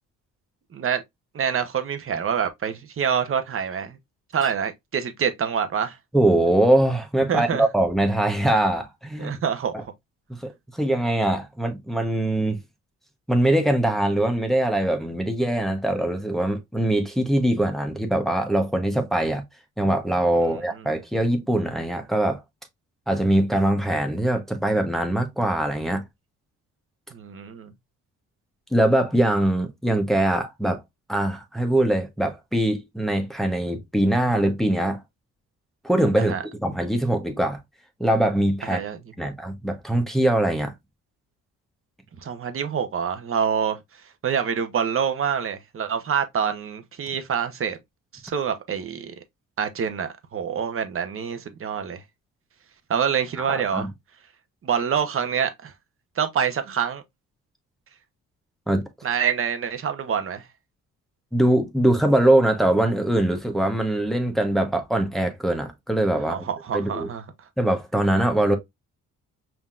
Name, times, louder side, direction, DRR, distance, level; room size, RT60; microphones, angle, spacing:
voice 1, 0.7-1.0 1.3-4.0 4.3-6.0 7.3-7.6 9.2-9.9 27.1-27.7 36.3-36.4 38.6-39.3 42.2-43.8 44.2-47.8 48.1-49.1 49.6-52.0 52.9-53.9 54.6-55.7 56.2-57.0 59.0-60.5 66.3-67.2, right 7 dB, 45° right, 0.9 m, -26 dB
voice 2, 6.1-9.4 9.7-9.8 10.3-12.6 13.3-19.4 19.8-22.4 23.1-26.0 28.7-30.8 31.1-35.0 35.8-37.6 38.0-38.8 39.2-40.7 53.4-53.9 58.7-58.9 61.3-66.4 66.7-67.1 67.6-68.6, right 1 dB, ahead, 0.9 m, -22 dB
5.5 x 2.9 x 2.4 m
cardioid pair, 90°, 30 cm